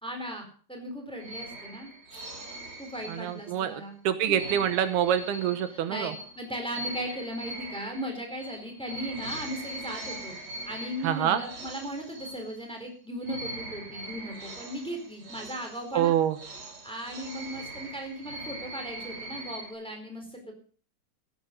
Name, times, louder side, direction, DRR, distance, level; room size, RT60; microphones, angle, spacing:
voice 1, 0.0-2.2 2.8-4.0 4.3-4.4 5.7-10.3 10.6-16.2 16.8-20.5, equal, ahead, 3 dB, 4.0 m, -37 dB
sound 1, 1.2-3.7 4.3-12.9 13.2-19.7, right 1 dB, 45° right, 5.0 m, -41 dB
voice 2, 3.1-6.1 11.0-11.4 15.9-16.4, right 10 dB, 85° right, 11 dB, 3.0 m, -26 dB
16.0 x 11.0 x 5.4 m, 0.42 s
omnidirectional pair, 4.6 m